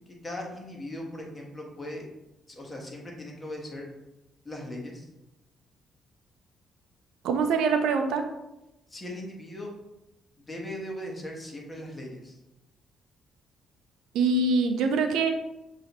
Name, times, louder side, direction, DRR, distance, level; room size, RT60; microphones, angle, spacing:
voice 1, 0.1-2.0 2.5-3.9 4.4-5.1 8.9-9.7 10.4-12.4, left 1 dB, 25° left, -1 dB, 1.2 m, -39 dB
voice 2, 7.2-8.2 14.1-15.3, right 4 dB, 85° right, 6 dB, 0.5 m, -24 dB
6.3 x 2.7 x 3.0 m, 0.94 s
cardioid pair, 90°, 0 cm